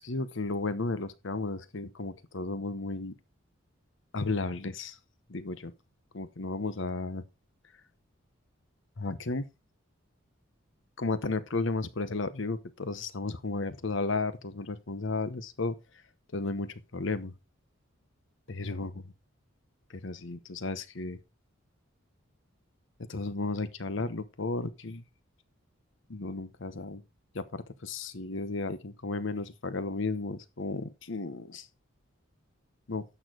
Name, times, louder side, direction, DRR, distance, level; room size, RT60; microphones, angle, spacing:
voice 1, 0.0-3.2 4.1-5.0 5.3-5.7 6.1-7.2 9.0-9.5 11.0-15.7 16.3-17.3 18.5-18.9 19.9-21.2 23.1-25.0 26.1-27.0 27.3-31.7 32.9-33.0, left 3 dB, 60° left, 0.9 m, -33 dB
11.0 x 6.5 x 3.9 m
head